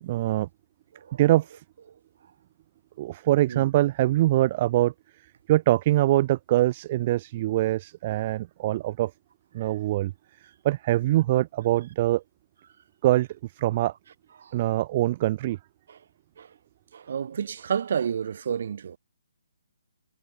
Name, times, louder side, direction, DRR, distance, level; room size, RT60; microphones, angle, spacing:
voice 1, 0.0-0.5 1.2-1.6 3.0-4.9 5.5-9.1 9.5-10.1 10.6-12.2 13.0-13.3 13.6-13.9 14.5-15.6, right 15 dB, 25° right, 2.6 m, -23 dB
voice 2, 16.9-19.0, right 7 dB, 50° right, 5.6 m, -30 dB
hypercardioid pair, 170°, 0 cm